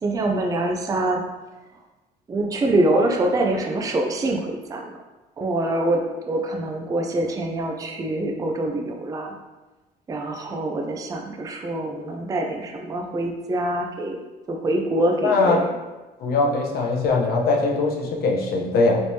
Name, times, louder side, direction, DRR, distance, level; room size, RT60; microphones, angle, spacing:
voice 1, 0.0-1.3 2.3-5.0 5.4-9.3 10.1-14.2 14.5-15.7, right 1 dB, 20° right, 2 dB, 0.4 m, -25 dB
voice 2, 15.2-15.6 16.2-19.0, left 3 dB, 65° left, 0 dB, 0.7 m, -21 dB
3.3 x 3.0 x 2.7 m, 1.1 s
cardioid pair, 110°, 17 cm